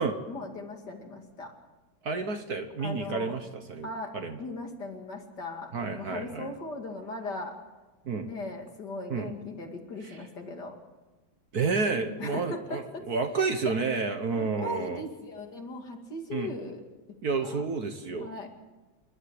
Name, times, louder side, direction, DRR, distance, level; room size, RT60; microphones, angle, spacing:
voice 1, 0.0-1.5 2.8-3.4 3.8-4.1 4.4-7.5 8.2-10.8 12.2-13.0 13.3-13.8 14.3-16.8 17.4-17.6 18.2-18.5, left 2 dB, 55° left, 3 dB, 2.9 m, -38 dB
voice 2, 2.0-3.9 4.1-4.4 5.7-6.5 8.0-8.3 9.1-9.3 11.5-15.0 16.3-16.5 17.2-18.3, right 4 dB, 50° right, 7 dB, 1.6 m, -30 dB
28.5 x 11.5 x 8.0 m, 1.2 s
omnidirectional pair, 2.2 m